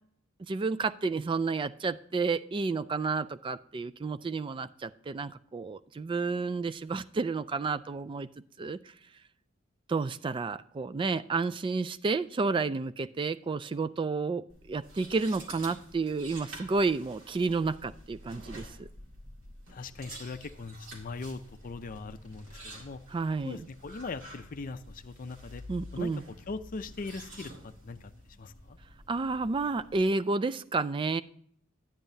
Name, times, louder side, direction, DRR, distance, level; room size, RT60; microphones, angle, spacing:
voice 1, 0.5-8.3 8.6-8.8 9.9-18.9 23.1-23.7 25.7-26.2 29.1-31.2, right 4 dB, 25° right, 13 dB, 0.3 m, -31 dB
sound 1, 14.5-30.0, equal, 85° right, 1.9 m, -49 dB
voice 2, 19.7-23.0 23.4-25.6 25.9-26.1 26.5-28.0 28.4-28.8, left 3 dB, 45° left, 9 dB, 0.5 m, -40 dB
10.5 x 8.9 x 2.7 m, 0.63 s
head